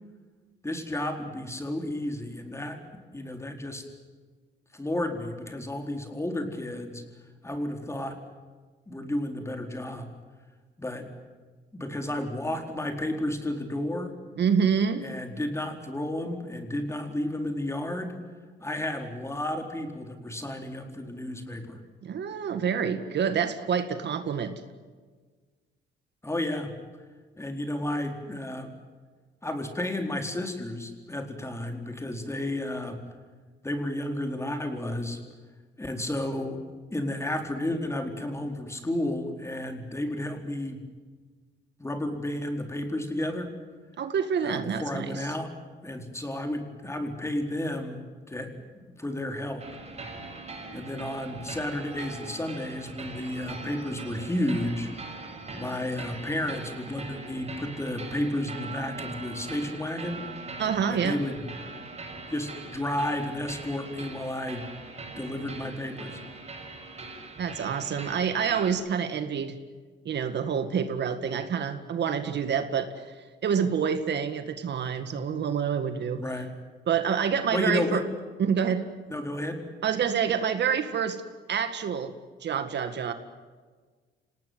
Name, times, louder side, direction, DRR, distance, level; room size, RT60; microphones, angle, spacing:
voice 1, 0.6-2.8 3.1-3.8 4.7-7.0 7.4-8.2 8.9-10.1 10.8-11.1 11.7-14.1 15.0-18.2 18.6-21.8 26.2-26.7 27.4-28.7 29.4-33.0 33.6-35.2 35.8-36.6 36.9-40.8 41.8-43.5 44.4-45.5 45.8-48.0 48.3-49.6 50.7-54.9 55.5-60.3 60.9-61.5 62.3-64.7 65.2-66.2 76.2-76.5 77.5-78.0 79.1-79.6, left 1 dB, 15° left, 4 dB, 4.3 m, -32 dB
voice 2, 14.4-15.0 22.0-24.6 44.0-45.2 60.6-61.2 67.4-69.6 70.1-73.1 73.4-76.2 76.9-78.0 78.4-78.8 79.8-81.2 81.5-82.1 82.4-83.1, right 7 dB, 60° right, 9 dB, 1.9 m, -27 dB
sound 1, 49.6-68.7, right 3 dB, 35° right, 7.9 m, -41 dB
26.5 x 19.0 x 9.4 m, 1.4 s
cardioid pair, 90°, 20 cm